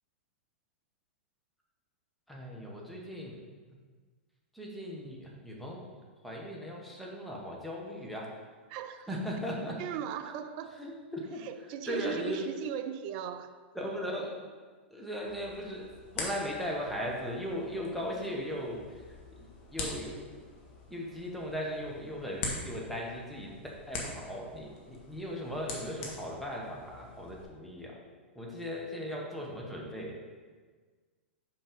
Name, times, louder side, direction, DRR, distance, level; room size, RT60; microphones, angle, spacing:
voice 1, 2.3-3.4 4.5-5.8 6.2-8.3 9.1-9.8 10.8-11.4 11.9-12.5 13.7-14.3 14.9-15.9 16.1-20.2 20.9-23.5 23.9-28.0 28.3-30.1, equal, ahead, -3 dB, 1.4 m, -38 dB
voice 2, 8.7-9.1 9.8-10.9 11.4-13.6, right 9 dB, 45° right, 10 dB, 0.5 m, -38 dB
sound 1, 15.3-27.4, left 3 dB, 45° left, 1.6 m, -44 dB
5.6 x 5.4 x 5.2 m, 1.5 s
hypercardioid pair, 115°, 7 cm